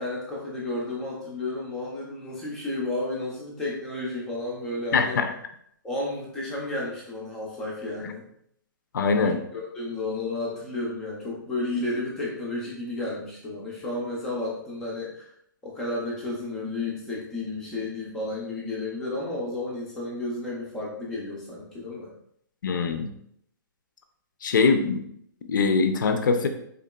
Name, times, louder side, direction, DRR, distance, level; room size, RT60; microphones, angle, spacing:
voice 1, 0.0-5.2 5.8-8.3 9.2-15.3 15.6-22.1, left 2 dB, 5° left, -4 dB, 0.4 m, -32 dB
voice 2, 4.9-5.3 8.9-9.4 22.6-23.1 24.4-25.0 25.5-26.5, left 4 dB, 65° left, 7 dB, 0.5 m, -22 dB
3.8 x 3.5 x 2.2 m, 0.70 s
hypercardioid pair, 180°, 11 cm